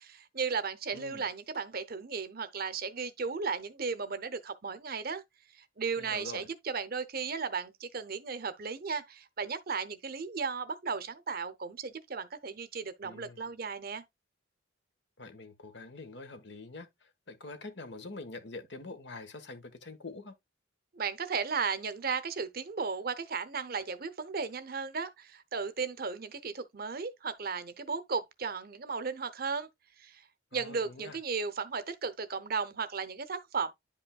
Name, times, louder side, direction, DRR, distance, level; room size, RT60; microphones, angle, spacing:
voice 1, 0.0-5.2 5.6-14.0 20.9-29.7 30.0-30.2 30.5-33.7, right 5 dB, 50° right, 0.7 m, -35 dB
voice 2, 0.9-1.2 6.0-6.5 13.0-13.4 15.2-16.9 17.3-20.3 30.5-31.2, left 3 dB, 60° left, 1.3 m, -45 dB
10.5 x 5.3 x 2.3 m
head